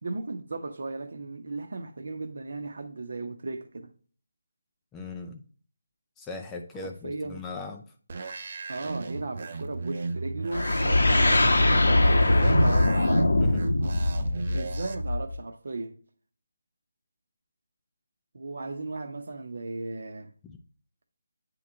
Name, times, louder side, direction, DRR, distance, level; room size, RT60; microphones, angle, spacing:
voice 1, 0.0-3.9 7.0-7.4 8.7-13.0 14.5-16.0 18.3-20.3, right 3 dB, 60° right, 0.9 m, -36 dB
voice 2, 4.9-5.4 6.2-7.8 13.4-13.7 20.4-20.6, left 3 dB, 10° left, 0.4 m, -39 dB
sound 1, 8.1-14.9, right 3 dB, 45° right, 0.5 m, -36 dB
sound 2, 10.5-15.3, left 1 dB, 80° left, 1.0 m, -22 dB
8.7 x 3.1 x 3.6 m
figure-of-eight pair, 160°, 0 cm